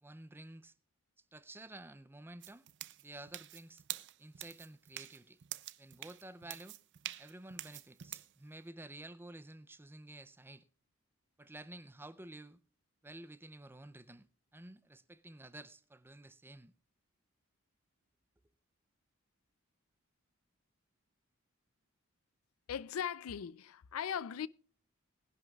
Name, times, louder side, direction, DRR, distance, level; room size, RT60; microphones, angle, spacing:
voice 1, 0.0-0.7 1.3-2.7 3.0-3.8 4.2-5.4 5.8-6.8 7.2-10.6 11.4-12.6 13.0-14.3 14.5-16.7, right 2 dB, 10° right, 0.5 m, -51 dB
sound 1, 2.4-8.3, right 14 dB, 60° right, 0.5 m, -46 dB
voice 2, 22.7-24.5, left 8 dB, 80° left, 0.4 m, -39 dB
21.0 x 10.5 x 2.4 m
head